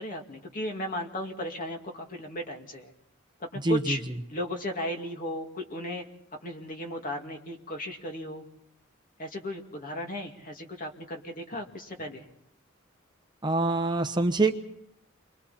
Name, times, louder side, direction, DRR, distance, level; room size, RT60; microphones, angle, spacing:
voice 1, 0.0-2.9 3.4-4.0 4.3-6.1 6.4-8.5 9.2-12.2, equal, 45° left, 3 dB, 2.4 m, -35 dB
voice 2, 3.6-4.0 13.4-14.5, right 2 dB, 20° right, 7 dB, 0.9 m, -25 dB
29.0 x 23.5 x 4.3 m, 0.77 s
head